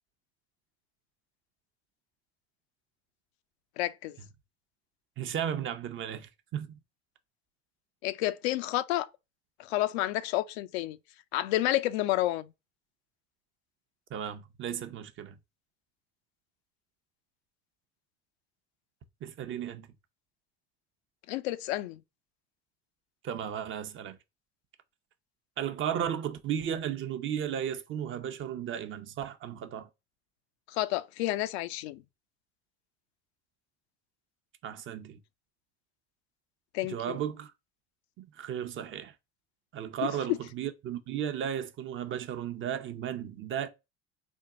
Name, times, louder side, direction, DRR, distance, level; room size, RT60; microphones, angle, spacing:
voice 1, 3.8-4.2 8.0-9.1 9.6-11.0 11.3-12.5 21.3-22.0 30.7-32.0 36.7-37.2 40.3-40.4, left 15 dB, 80° left, 0.5 m, -30 dB
voice 2, 5.2-6.8 14.1-15.3 19.2-19.9 23.2-24.2 25.6-29.9 34.6-35.2 36.8-37.5 38.2-39.1 39.7-43.7, right 9 dB, 40° right, 0.6 m, -34 dB
3.5 x 2.2 x 3.7 m
supercardioid pair, 90°, 32 cm